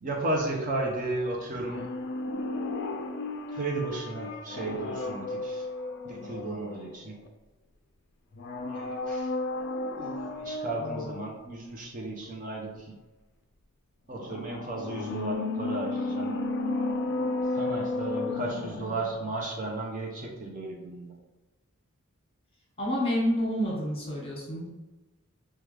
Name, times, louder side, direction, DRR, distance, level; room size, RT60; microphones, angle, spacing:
voice 1, 0.0-1.9 3.5-5.7 6.0-7.2 8.7-9.3 10.0-13.0 14.1-16.4 17.5-21.1, right 2 dB, 40° right, -1 dB, 0.6 m, -34 dB
sound 1, 1.5-7.3 8.3-11.4 14.1-19.3 19.6-19.7, left 2 dB, 55° left, 0.4 m, -33 dB
voice 2, 22.8-24.7, equal, 25° left, -4 dB, 1.2 m, -28 dB
4.8 x 2.3 x 3.2 m, 1.1 s
head